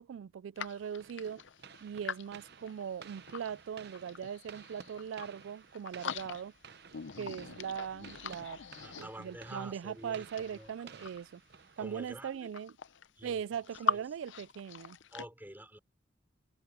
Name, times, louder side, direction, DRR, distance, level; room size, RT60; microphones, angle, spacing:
voice 1, 0.0-1.4 1.8-6.5 7.2-8.6 9.0-11.4 11.8-12.7 13.2-15.0, right 8 dB, 90° right, 0.3 m, -40 dB
sound 1, 0.6-3.5 3.9-5.4 5.7-6.7 6.9-9.5 10.2-11.4 12.1-12.2 12.4-14.0 14.2-15.2, left 6 dB, 80° left, 0.6 m, -41 dB
sound 2, 1.0-12.3, right 6 dB, 55° right, 0.8 m, -55 dB
voice 2, 8.8-10.9 11.8-12.5 13.2-14.0 15.1-15.8, right 1 dB, 10° right, 4.5 m, -49 dB
head